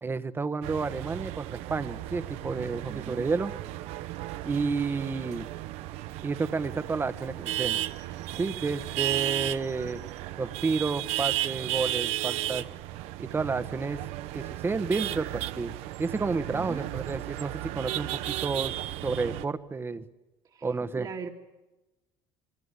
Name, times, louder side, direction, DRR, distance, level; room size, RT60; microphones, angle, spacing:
voice 1, 0.0-3.5 4.4-5.5 6.2-7.8 8.3-10.0 10.4-12.6 13.2-14.0 14.3-15.7 16.0-18.7 19.0-20.0 20.6-21.1, right 4 dB, 20° right, 11 dB, 1.4 m, -31 dB
sound 1, 0.6-19.5, right 14 dB, 75° right, 0.9 m, -34 dB
voice 2, 2.9-3.3 16.5-16.9 20.4-21.3, right 6 dB, 40° right, 2 dB, 2.2 m, -40 dB
27.5 x 23.0 x 8.3 m, 1.1 s
supercardioid pair, 105°, 11 cm